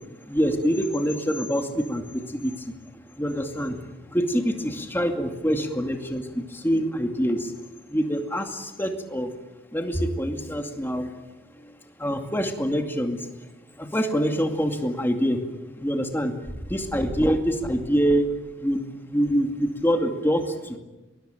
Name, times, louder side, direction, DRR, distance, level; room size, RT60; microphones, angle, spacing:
voice 1, 0.3-2.7 3.2-3.8 4.1-7.5 7.9-9.3 9.7-11.1 11.6-13.3 13.8-15.4 15.8-18.3 18.6-18.8 19.1-20.8, equal, 10° left, 4 dB, 2.3 m, -25 dB
23.5 x 20.5 x 9.1 m, 1.1 s
head